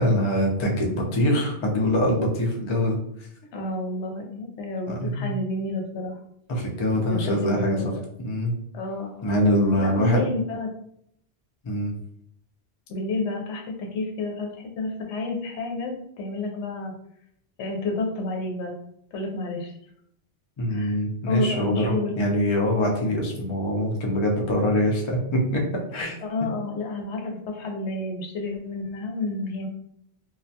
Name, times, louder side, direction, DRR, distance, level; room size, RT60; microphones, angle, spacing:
voice 1, 0.0-3.0 4.9-5.3 6.5-7.8 8.2-8.5 9.2-10.2 11.6-11.9 20.6-26.2, equal, 50° left, -1 dB, 0.3 m, -23 dB
voice 2, 3.5-6.2 7.1-8.0 8.7-10.7 12.9-16.9 17.6-18.7 19.1-19.7 20.7-21.0 21.3-22.2 23.0-23.1 26.2-29.7, left 2 dB, 80° left, 1 dB, 0.9 m, -30 dB
2.3 x 2.1 x 2.6 m, 0.72 s
omnidirectional pair, 1.2 m